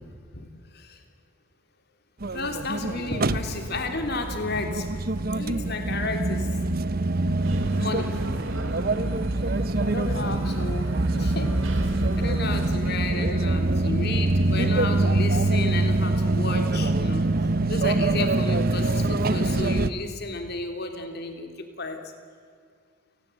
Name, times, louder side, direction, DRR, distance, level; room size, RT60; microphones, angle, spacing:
sound 1, 2.2-19.9, right 2 dB, 45° right, 0.9 m, -24 dB
voice 1, 2.3-4.9 5.3-6.5 7.7-8.1 9.8-11.6 11.9-22.0, left 3 dB, 50° left, 5 dB, 3.3 m, -32 dB
sound 2, 7.4-12.8, right 1 dB, 75° right, 3.5 m, -37 dB
30.0 x 19.0 x 9.3 m, 2.1 s
head